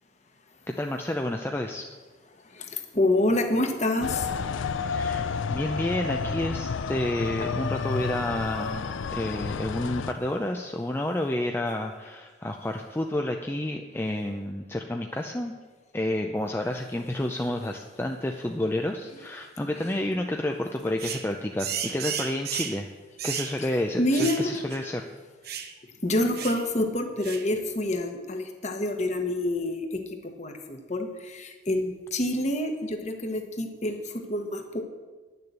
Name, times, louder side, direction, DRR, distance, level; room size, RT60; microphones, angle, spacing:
voice 1, 0.7-1.8 4.9-15.6 15.9-22.9 23.2-25.1, left 1 dB, 10° left, 3 dB, 0.5 m, -30 dB
voice 2, 2.5-4.3 4.6-4.7 24.0-24.5 26.0-30.0 30.4-34.8, left 1 dB, 35° left, 5 dB, 1.2 m, -27 dB
sound 1, 4.0-10.1, left 5 dB, 80° left, 0.5 m, -31 dB
sound 2, 21.0-21.3 21.6-22.8 23.2-23.6 24.1-24.5 24.7-24.8 25.4-25.7 26.3-26.6 27.2-27.5, right 9 dB, 50° right, 0.8 m, -33 dB
10.5 x 6.8 x 8.0 m, 1.4 s
head